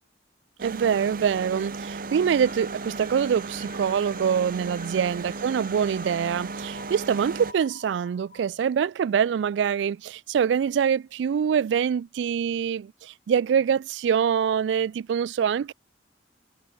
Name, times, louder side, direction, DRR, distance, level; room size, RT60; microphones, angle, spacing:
sound 1, 0.6-7.5, right 3 dB, 50° right, 0.9 m, -36 dB
voice 1, 0.6-15.7, right 7 dB, 75° right, 0.3 m, -25 dB
sound 2, 2.1-8.5, left 6 dB, 40° left, 3.1 m, -49 dB
head